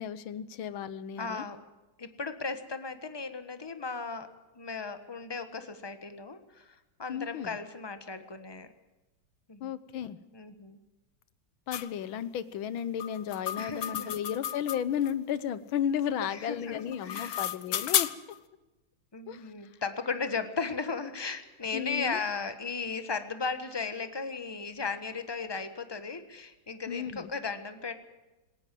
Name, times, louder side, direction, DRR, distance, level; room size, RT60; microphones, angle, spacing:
voice 1, 0.0-1.5 7.1-7.6 9.6-10.2 11.7-18.1 19.3-19.5 21.7-22.2 26.9-27.3, left 9 dB, 80° left, 15 dB, 1.7 m, -34 dB
voice 2, 1.2-1.6 2.0-4.3 4.5-8.7 9.5-9.7 10.3-10.8 13.6-14.1 16.3-17.5 19.1-27.9, left 4 dB, 15° left, 9 dB, 1.2 m, -36 dB
sound 1, 11.7-11.9 13.0-15.1 16.8-18.4, left 10 dB, 60° left, 1.1 m, -32 dB
20.0 x 18.5 x 7.7 m, 1.1 s
omnidirectional pair, 2.2 m